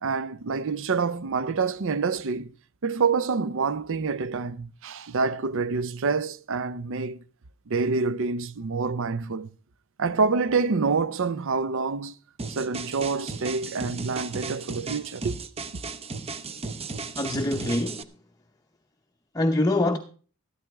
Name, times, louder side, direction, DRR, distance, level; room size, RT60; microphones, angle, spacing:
voice 1, 0.0-2.5 2.8-7.2 7.7-9.5 10.0-12.1 12.5-15.4, right 4 dB, 65° right, 0.6 m, -27 dB
sound 1, 12.4-18.0, right 4 dB, 30° right, 0.7 m, -35 dB
voice 2, 17.2-18.1 19.3-20.0, left 1 dB, 15° left, 0.7 m, -24 dB
14.0 x 12.0 x 3.5 m
head